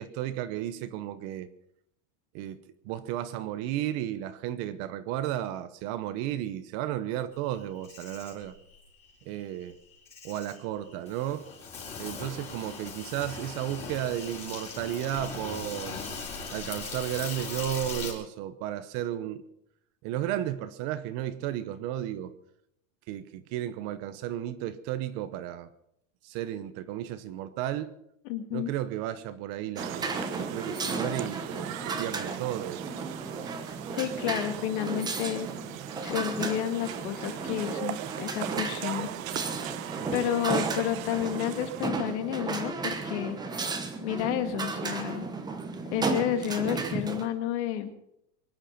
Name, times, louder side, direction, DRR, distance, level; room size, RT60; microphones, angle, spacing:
voice 1, 0.0-1.5 2.3-2.6 2.8-8.5 9.2-9.7 10.2-11.5 12.0-16.0 16.5-19.4 20.0-22.3 23.1-25.7 26.2-27.9 28.5-33.0 33.8-33.9 40.0-40.2, right 12 dB, 40° right, 13 dB, 0.9 m, -33 dB
Insect, 7.5-18.1, left 4 dB, 15° left, 4.3 m, -40 dB
voice 2, 28.2-28.7 34.0-35.5 36.0-39.1 40.1-43.6 44.0-45.2 45.9-47.9, left 11 dB, 55° left, 8 dB, 2.1 m, -31 dB
sound 1, 29.8-47.3, right 4 dB, 10° right, 1.1 m, -34 dB
sound 2, 29.8-41.9, right 13 dB, 75° right, 1.2 m, -39 dB
24.0 x 9.9 x 5.8 m, 0.76 s
supercardioid pair, 165°, 40 cm